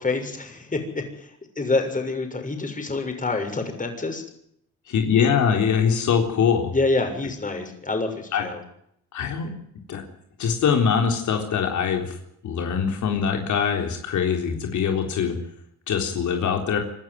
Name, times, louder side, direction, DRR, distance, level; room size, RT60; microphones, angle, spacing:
voice 1, 0.0-4.2 6.7-8.6, left 3 dB, 25° left, 5 dB, 6.7 m, -27 dB
voice 2, 4.9-6.7 8.3-8.5 9.1-9.5 9.9-10.0 10.4-12.2 12.4-15.4 15.9-16.8, left 7 dB, 75° left, 4 dB, 3.9 m, -23 dB
26.5 x 12.5 x 9.4 m, 0.71 s
cardioid pair, 90°, 30 cm